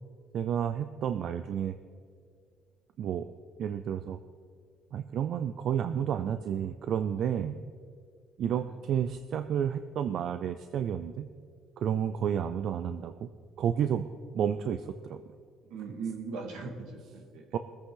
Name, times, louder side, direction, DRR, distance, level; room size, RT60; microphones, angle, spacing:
voice 1, 0.3-1.8 3.0-3.3 3.6-4.2 4.9-7.6 8.4-11.3 11.8-13.3 13.6-14.0 14.3-15.2 17.5-17.6, right 9 dB, 65° right, 9 dB, 0.5 m, -31 dB
voice 2, 8.5-8.8 15.6-17.5, right 4 dB, 85° right, 3 dB, 2.0 m, -40 dB
20.5 x 8.5 x 3.9 m, 2.1 s
cardioid pair, 90°, 0 cm